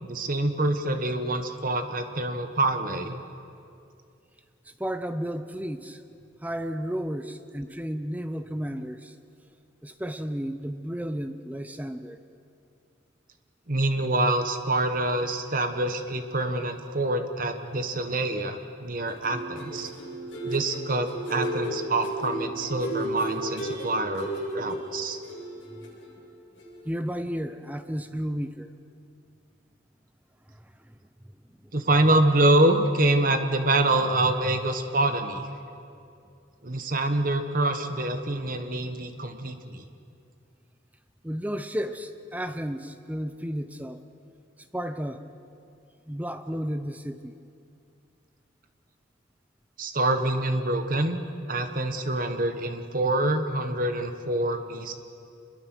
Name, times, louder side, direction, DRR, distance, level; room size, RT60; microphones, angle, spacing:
voice 1, 0.0-3.2 13.7-19.9 20.4-25.2 31.7-35.5 36.6-39.8 49.8-51.2 51.5-54.9, right 2 dB, 45° right, 7 dB, 1.4 m, -26 dB
voice 2, 4.7-6.0 6.4-9.1 9.8-12.2 25.7-25.9 26.8-28.7 30.5-30.6 30.9-31.0 31.6-31.7 41.2-44.0 44.7-45.3 46.1-47.3, equal, 10° right, 10 dB, 0.7 m, -33 dB
sound 1, 19.1-26.3 26.6-26.8, right 1 dB, 70° left, 7.9 m, -34 dB
27.0 x 22.0 x 6.2 m, 2.5 s
head